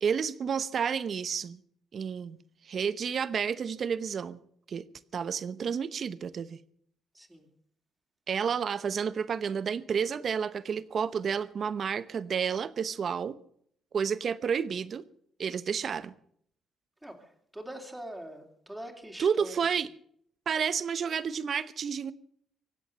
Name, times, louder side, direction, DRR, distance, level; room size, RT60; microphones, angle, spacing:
voice 1, 0.0-1.6 1.9-2.4 2.6-4.4 4.7-4.9 5.1-6.6 8.3-13.4 13.9-15.0 15.4-16.1 19.2-19.9 20.5-22.1, right 7 dB, 50° right, 0.9 m, -30 dB
voice 2, 7.1-7.5 17.0-19.7, right 1 dB, 5° right, 3.3 m, -43 dB
24.0 x 8.3 x 6.8 m
cardioid pair, 90°, 0 cm